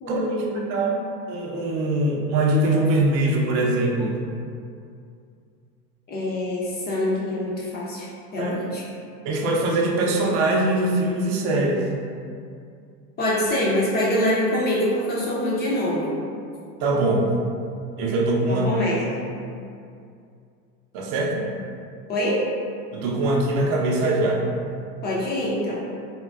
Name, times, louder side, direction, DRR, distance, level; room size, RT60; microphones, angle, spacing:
voice 1, 0.0-0.9 6.1-8.1 8.3-8.8 13.2-16.2 18.5-19.3 22.1-22.4 25.0-25.9, left 1 dB, 20° left, -5 dB, 0.4 m, -25 dB
voice 2, 1.3-4.2 8.4-8.6 9.2-11.8 16.8-17.3 18.0-18.7 20.9-21.5 22.9-24.4, right 2 dB, 50° right, -1 dB, 0.6 m, -22 dB
3.6 x 2.2 x 2.3 m, 2.4 s
hypercardioid pair, 105°, 50 cm